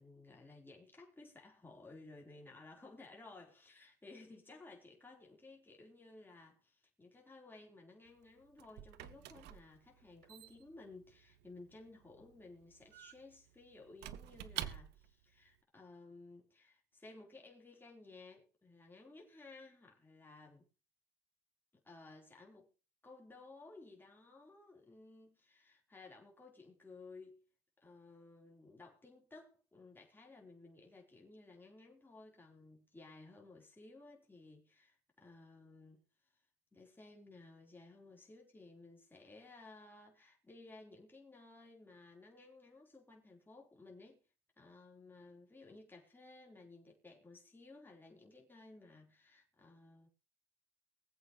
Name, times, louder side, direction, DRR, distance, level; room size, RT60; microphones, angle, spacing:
voice 1, 0.0-20.7 21.8-22.7 23.0-27.4 27.8-36.0 36.3-36.4 36.7-44.2 44.6-50.1, left 3 dB, 10° left, 4.0 m, -57 dB
Squeak / Wood, 8.1-15.2, right 12 dB, 85° right, 1.0 m, -49 dB
23.5 x 8.1 x 3.1 m
cardioid pair, 110°, 17 cm